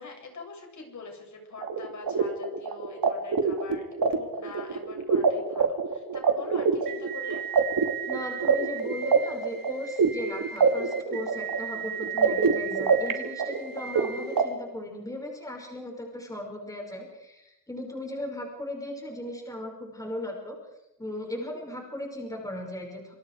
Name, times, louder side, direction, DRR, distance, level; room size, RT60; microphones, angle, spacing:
voice 1, 0.0-7.5, left 3 dB, 55° left, 2 dB, 7.5 m, -44 dB
sound 1, 1.6-14.4, right 5 dB, 70° right, 2.8 m, -26 dB
voice 2, 8.1-20.6 21.0-23.1, left 1 dB, 10° left, 1 dB, 5.8 m, -37 dB
27.5 x 27.0 x 4.9 m, 0.89 s
wide cardioid pair, 160°, 36 cm